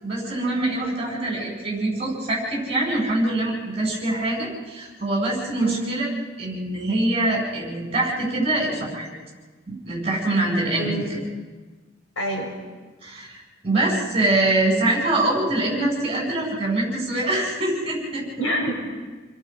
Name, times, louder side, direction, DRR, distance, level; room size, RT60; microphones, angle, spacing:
voice 1, 0.0-6.1 6.4-9.1 9.7-11.2 13.0-18.5, right 2 dB, 25° right, -2 dB, 7.7 m, -24 dB
voice 2, 10.8-11.1 12.2-12.5 18.4-18.8, right 1 dB, 65° left, 0 dB, 6.1 m, -26 dB
30.0 x 21.5 x 5.2 m, 1.3 s
head